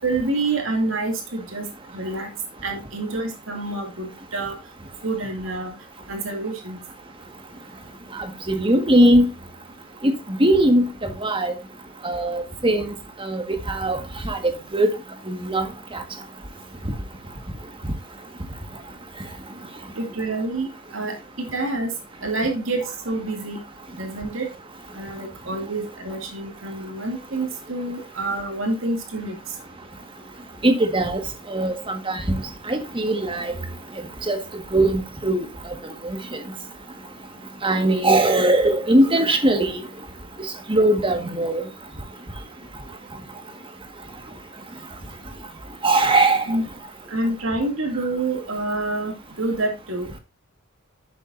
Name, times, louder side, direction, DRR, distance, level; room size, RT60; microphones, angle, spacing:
voice 1, 0.0-2.3 2.6-4.6 5.0-5.7 6.1-6.8 20.0-21.9 22.2-23.6 24.0-24.5 24.9-29.4 46.5-46.6 47.1-50.2, right 2 dB, 65° right, 2.4 m, -27 dB
voice 2, 8.1-9.3 10.0-10.1 10.4-11.5 12.0-12.9 13.2-14.9 15.3-15.7 15.9-16.0 30.6-31.2 31.5-32.4 32.7-33.5 34.3-34.4 34.7-35.4 36.0-36.2 37.6-39.8 40.7-41.6 45.8-46.4, right 1 dB, 25° right, 1.6 m, -20 dB
11.0 x 7.7 x 2.6 m
head